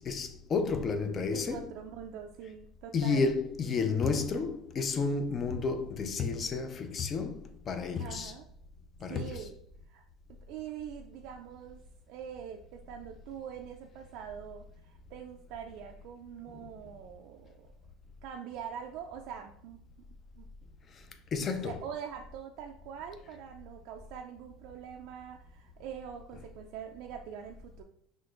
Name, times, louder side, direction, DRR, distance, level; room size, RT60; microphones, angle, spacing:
voice 1, 0.0-1.6 2.9-8.3 9.0-9.3 21.3-21.7, left 4 dB, 30° left, 0.4 m, -31 dB
voice 2, 1.3-3.3 8.0-8.5 9.1-9.6 9.9-10.0 10.5-11.8 12.1-17.7 18.2-19.8 20.4-20.5 21.3-27.8, right 8 dB, 60° right, 0.3 m, -44 dB
5.9 x 2.5 x 2.4 m
cardioid pair, 150°, 0 cm